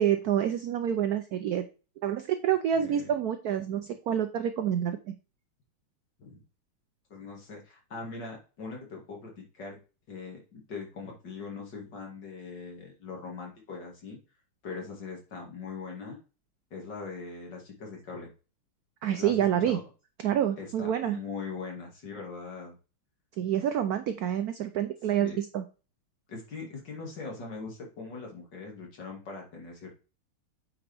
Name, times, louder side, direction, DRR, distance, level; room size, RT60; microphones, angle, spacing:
voice 1, 0.0-1.6 2.0-5.1 19.0-19.8 20.2-21.2 23.4-25.6, right 9 dB, 85° right, 9 dB, 0.8 m, -28 dB
voice 2, 2.7-3.1 6.2-6.4 7.1-9.8 10.1-14.2 14.6-16.2 16.7-18.3 19.1-19.8 20.6-22.7 25.2-25.4 26.3-29.9, left 4 dB, 55° left, 0 dB, 2.6 m, -41 dB
8.4 x 5.2 x 3.4 m, 0.34 s
omnidirectional pair, 2.3 m